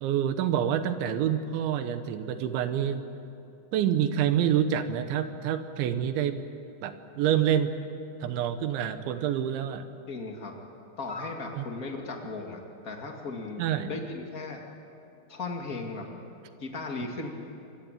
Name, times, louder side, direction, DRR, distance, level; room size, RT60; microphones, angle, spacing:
voice 1, 0.0-3.0 3.7-6.4 6.8-7.7 8.2-9.9 11.5-11.6 13.6-13.9, right 9 dB, 75° right, 9 dB, 3.3 m, -27 dB
voice 2, 10.1-10.6 11.0-14.6 15.3-16.1 16.6-17.3, left 3 dB, 70° left, 1 dB, 0.8 m, -36 dB
26.5 x 22.0 x 9.1 m, 2.8 s
omnidirectional pair, 5.6 m